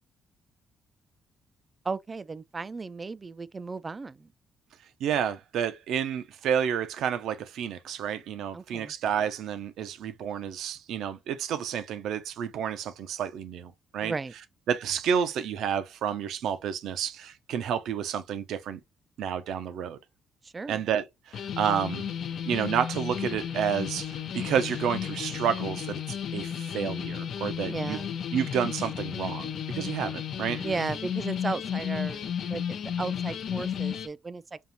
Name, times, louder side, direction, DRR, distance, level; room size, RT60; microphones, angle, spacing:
voice 1, 1.8-4.3 8.5-8.9 14.0-14.3 20.4-20.8 27.6-28.1 30.6-34.6, right 4 dB, 30° right, 0.3 m, -35 dB
voice 2, 5.0-14.1 14.7-18.8 19.2-20.0 20.7-22.1 22.5-28.0 28.3-30.6, right 8 dB, 80° right, 0.6 m, -30 dB
sound 1, 21.3-34.1, left 8 dB, 65° left, 0.6 m, -33 dB
5.3 x 2.4 x 2.7 m
cardioid pair, 90°, 0 cm